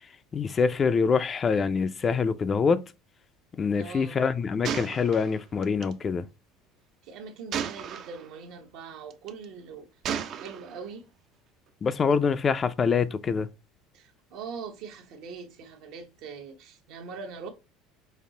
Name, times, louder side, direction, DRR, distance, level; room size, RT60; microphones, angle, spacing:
voice 1, 0.3-2.8 3.6-6.3 11.8-13.5, left 5 dB, 30° left, 0.4 m, -25 dB
voice 2, 3.7-4.2 7.0-9.9 10.3-11.0 12.1-12.2 13.9-17.5, right 5 dB, 65° right, 1.0 m, -42 dB
Gunshot gunfire, 4.6-5.9 7.5-8.3 9.1-9.5 10.0-10.8, right 8 dB, 50° right, 0.5 m, -34 dB
5.3 x 2.0 x 3.7 m
supercardioid pair, 105°, 0 cm